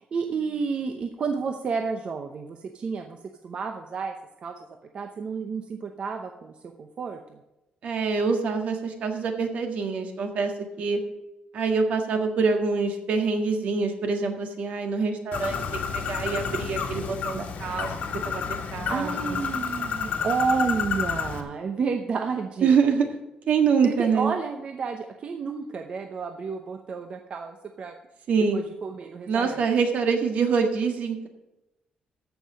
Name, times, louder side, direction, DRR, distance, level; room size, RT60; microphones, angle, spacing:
voice 1, 0.0-3.2 3.4-4.1 4.4-4.7 4.9-7.4 18.9-22.8 23.8-27.9 28.5-29.6, right 5 dB, 45° right, 5 dB, 0.8 m, -30 dB
voice 2, 7.8-10.5 10.8-11.0 11.5-17.9 18.2-19.4 22.6-23.1 23.5-24.3 28.3-28.6 29.3-31.3, right 5 dB, 65° right, 5 dB, 1.7 m, -25 dB
Bird, 15.3-21.4, left 6 dB, 75° left, 1.6 m, -30 dB
14.0 x 5.8 x 6.3 m, 0.94 s
cardioid pair, 150°, 3 cm